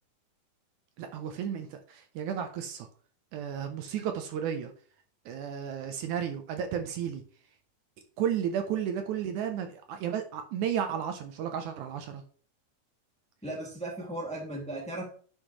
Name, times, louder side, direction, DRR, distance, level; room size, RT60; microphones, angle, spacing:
voice 1, 1.0-2.9 3.3-4.7 5.3-7.2 8.2-12.2, right 8 dB, 75° right, 6 dB, 2.1 m, -33 dB
voice 2, 13.4-15.1, right 1 dB, 5° left, -2 dB, 1.7 m, -36 dB
9.8 x 6.0 x 3.1 m, 0.44 s
omnidirectional pair, 3.8 m